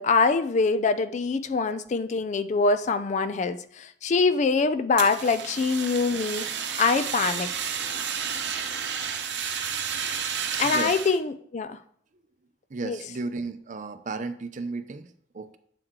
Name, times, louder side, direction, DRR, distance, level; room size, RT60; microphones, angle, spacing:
voice 1, 0.0-6.4 6.8-7.5 10.6-11.8 12.9-13.0, left 4 dB, 40° left, 12 dB, 0.4 m, -24 dB
Fire, 5.0-11.2, right 7 dB, 75° right, 0.8 m, -31 dB
voice 2, 10.5-11.0 12.7-15.6, right 3 dB, 45° right, 10 dB, 0.5 m, -34 dB
7.6 x 4.7 x 3.7 m, 0.62 s
head